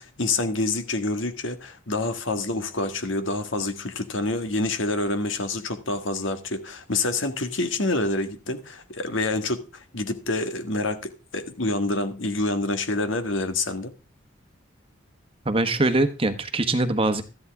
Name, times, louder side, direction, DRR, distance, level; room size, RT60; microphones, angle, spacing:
voice 1, 0.0-13.9, left 2 dB, 70° left, 1.8 m, -27 dB
voice 2, 15.4-17.2, right 2 dB, 25° right, 1.2 m, -22 dB
13.5 x 11.0 x 3.6 m
head